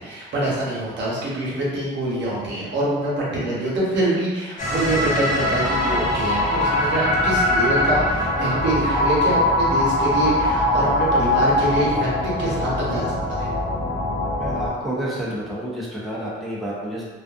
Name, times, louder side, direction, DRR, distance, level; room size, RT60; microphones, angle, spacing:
voice 1, 0.0-13.5, right 1 dB, 65° right, -6 dB, 0.9 m, -25 dB
sound 1, 4.6-14.7, left 1 dB, 40° left, 0.8 m, -22 dB
voice 2, 14.4-17.0, right 1 dB, ahead, -6 dB, 0.6 m, -29 dB
2.5 x 2.3 x 2.4 m, 1.3 s
cardioid pair, 90°, 20 cm